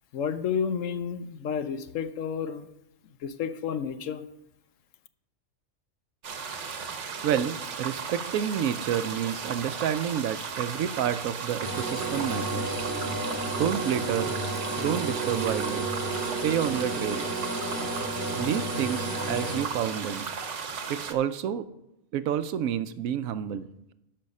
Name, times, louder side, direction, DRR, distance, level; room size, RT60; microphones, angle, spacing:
voice 1, 0.1-2.7 3.2-4.2, left 7 dB, 75° left, 11 dB, 1.0 m, -31 dB
sound 1, 6.2-21.1, right 6 dB, 65° right, 1.2 m, -36 dB
voice 2, 7.2-12.9 13.6-14.4 14.8-15.9 16.2-17.3 18.4-20.3 20.9-21.7 22.1-23.7, right 9 dB, 85° right, 13 dB, 1.0 m, -29 dB
sound 2, 11.6-19.6, right 2 dB, 40° left, 3.9 m, -32 dB
12.0 x 5.6 x 5.3 m, 0.86 s
omnidirectional pair, 1.4 m